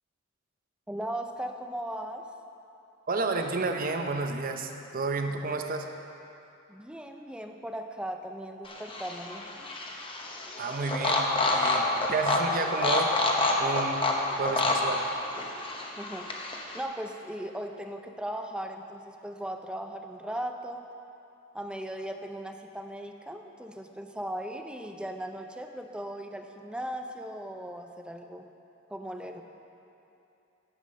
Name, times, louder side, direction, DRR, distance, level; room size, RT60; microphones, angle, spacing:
voice 1, 0.9-2.3 6.7-9.5 16.0-16.3 16.7-20.9 21.5-28.5 28.9-29.4, right 1 dB, 5° right, 5 dB, 0.5 m, -38 dB
voice 2, 3.1-5.9 10.6-13.1 13.6-14.0 14.4-15.1, right 3 dB, 45° right, 5 dB, 0.7 m, -31 dB
sound 1, 8.7-16.8, left 2 dB, 25° left, 0.9 m, -28 dB
9.9 x 7.2 x 6.4 m, 2.8 s
head